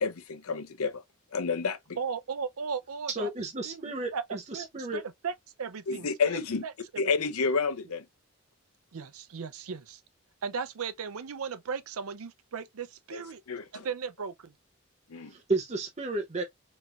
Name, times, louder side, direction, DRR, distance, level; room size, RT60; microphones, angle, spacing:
voice 1, 0.0-1.0 1.3-1.8 5.9-6.7 7.0-8.1 13.5-13.9 15.1-15.3, left 5 dB, 85° left, 0.7 m, -29 dB
voice 2, 2.0-3.3 3.6-4.2 4.5-5.3 5.6-7.0 8.9-10.0 10.4-13.4 13.7-14.5, right 6 dB, 80° right, 0.6 m, -37 dB
voice 3, 3.1-5.0 15.3-16.4, right 2 dB, 30° right, 0.7 m, -32 dB
4.4 x 3.0 x 2.4 m
head